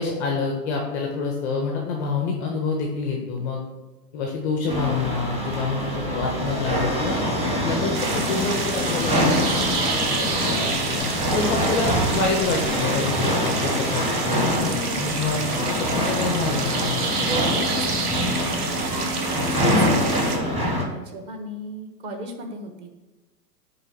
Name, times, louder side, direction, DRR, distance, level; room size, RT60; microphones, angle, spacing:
voice 1, 0.0-3.6 4.1-7.2 7.6-14.2 14.9-15.5 15.8-17.0 20.6-20.9, left 4 dB, 5° left, 0 dB, 0.3 m, -27 dB
sound 1, 4.7-20.8, left 1 dB, 10° right, 1.0 m, -24 dB
sound 2, 7.9-20.4, right 4 dB, 70° right, 1.4 m, -29 dB
voice 2, 14.6-15.2 17.2-23.0, right 1 dB, 35° right, 5 dB, 1.2 m, -37 dB
9.2 x 3.3 x 6.0 m, 1.1 s
hypercardioid pair, 130°, 49 cm